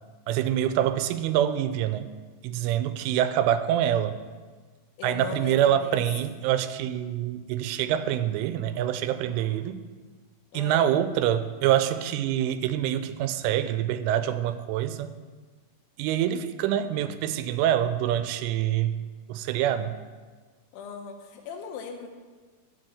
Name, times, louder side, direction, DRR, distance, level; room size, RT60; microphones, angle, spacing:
voice 1, 0.3-2.1 2.4-4.2 5.0-9.8 10.5-15.1 16.0-19.0 19.3-20.0, right 11 dB, 85° right, 12 dB, 3.1 m, -25 dB
voice 2, 5.0-6.3 10.5-10.9 20.7-22.1, left 7 dB, 80° left, 2 dB, 3.2 m, -39 dB
12.5 x 4.8 x 7.6 m, 1.4 s
omnidirectional pair, 5.6 m